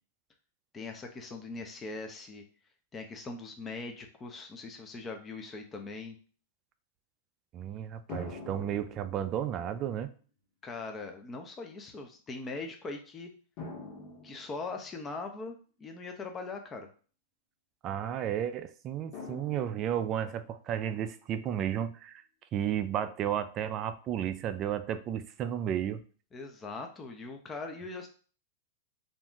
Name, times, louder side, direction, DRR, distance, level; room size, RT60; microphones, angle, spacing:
voice 1, 0.7-2.4 2.9-6.2 10.6-13.3 14.2-16.9 26.3-28.1, left 3 dB, 20° left, 4 dB, 0.5 m, -41 dB
voice 2, 7.5-10.1 17.8-22.2 22.5-26.0, right 10 dB, 35° right, 11 dB, 0.3 m, -33 dB
sound 1, 8.1-9.8 10.8-10.9 13.6-15.3 19.1-20.4, left 3 dB, 50° left, 1.2 m, -46 dB
2.5 x 2.2 x 3.6 m, 0.40 s
hypercardioid pair, 115°, 0 cm